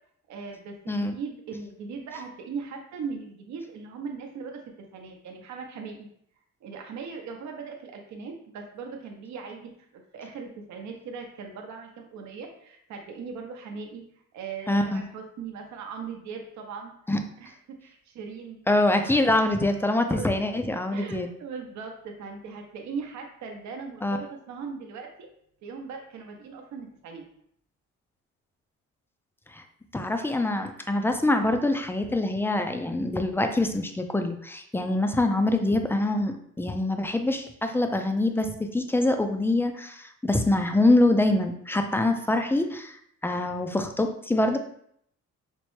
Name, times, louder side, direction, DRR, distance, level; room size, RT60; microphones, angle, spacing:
voice 1, 0.3-6.1 6.6-14.0 14.3-16.9 17.4-17.6 17.8-18.6 19.9-20.3 20.9-25.3 25.6-27.2, right 5 dB, 70° right, 3 dB, 0.7 m, -39 dB
voice 2, 14.7-15.0 17.1-17.2 18.7-21.3 24.0-24.2 29.5-29.6 29.9-44.6, left 2 dB, 10° left, 6 dB, 0.3 m, -25 dB
4.4 x 2.0 x 3.1 m, 0.68 s
cardioid pair, 90°, 30 cm